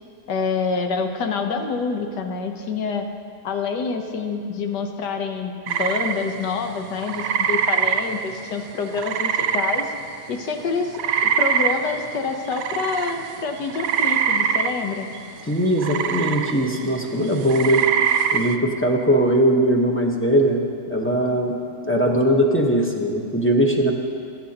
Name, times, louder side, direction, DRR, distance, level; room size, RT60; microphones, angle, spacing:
voice 1, 0.3-3.1 3.4-9.9 10.3-15.1, left 5 dB, 85° left, 5 dB, 1.6 m, -27 dB
frog calls, 5.7-10.4 10.6-18.6, right 7 dB, 70° right, 0.9 m, -24 dB
voice 2, 15.5-17.8 18.3-21.5 21.8-23.9, right 1 dB, 10° left, 0 dB, 0.7 m, -20 dB
21.5 x 11.0 x 2.9 m, 2.3 s
omnidirectional pair, 1.8 m